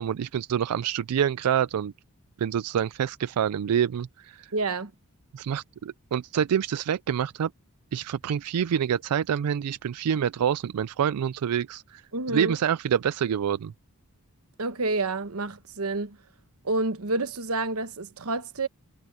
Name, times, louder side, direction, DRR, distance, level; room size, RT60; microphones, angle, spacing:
voice 1, 0.0-1.9 2.4-4.5 5.3-7.5 7.9-12.0 12.3-13.7, right 8 dB, 90° right, 0.4 m, -27 dB
voice 2, 4.5-4.9 12.1-12.6 14.6-16.2 16.6-18.7, right 3 dB, 70° right, 1.1 m, -28 dB
head